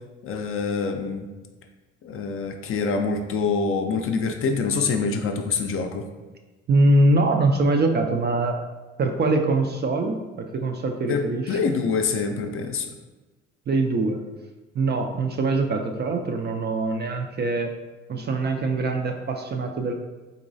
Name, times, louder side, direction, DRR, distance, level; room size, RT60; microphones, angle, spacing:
voice 1, 0.2-1.3 2.0-6.0 11.1-12.9, left 4 dB, 40° left, 5 dB, 0.5 m, -25 dB
voice 2, 6.7-8.6 9.0-11.6 13.7-14.2 14.7-17.7 18.1-19.9, right 2 dB, 30° right, 4 dB, 0.4 m, -23 dB
4.0 x 2.9 x 2.6 m, 1.2 s
hypercardioid pair, 55°, 36 cm